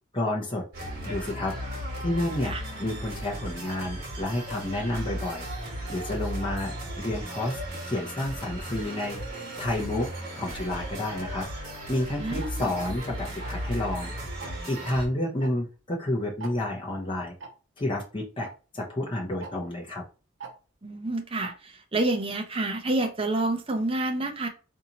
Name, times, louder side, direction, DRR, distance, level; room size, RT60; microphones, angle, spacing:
voice 1, 0.1-0.6 1.0-1.5 2.0-5.5 5.9-9.2 9.6-10.1 10.4-11.4 11.9-14.1 14.7-17.3 17.8-18.5 18.7-20.0, left 1 dB, 25° left, 0.7 m, -30 dB
sound 1, 0.7-15.1, equal, 50° right, 1.2 m, -36 dB
voice 2, 12.2-12.7 20.8-21.5 21.9-24.5, right 2 dB, 30° right, 0.6 m, -28 dB
Tick-tock, 12.4-12.5 13.4-13.7 14.4-14.7 15.4-15.5 15.8-15.9 16.4-16.5 17.4-17.5 18.4-18.5 19.4-19.5 20.4-20.5 21.4-21.5, right 4 dB, 70° right, 0.7 m, -40 dB
3.9 x 2.7 x 2.9 m
head